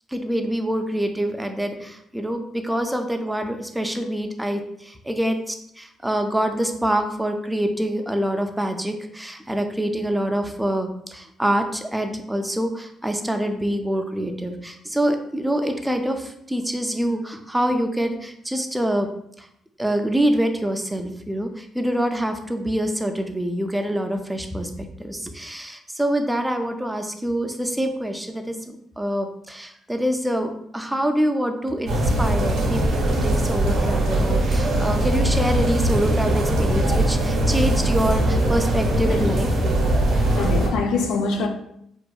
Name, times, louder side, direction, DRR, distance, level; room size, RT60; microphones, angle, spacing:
voice 1, 0.1-19.1 19.4-19.5 19.8-39.6, right 1 dB, 10° right, 0.3 m, -25 dB
sound 1, 31.9-40.7, right 1 dB, 75° right, 0.7 m, -21 dB
voice 2, 40.1-41.5, left 4 dB, 85° left, 0.3 m, -24 dB
2.7 x 2.3 x 2.2 m
cardioid pair, 90°, 0 cm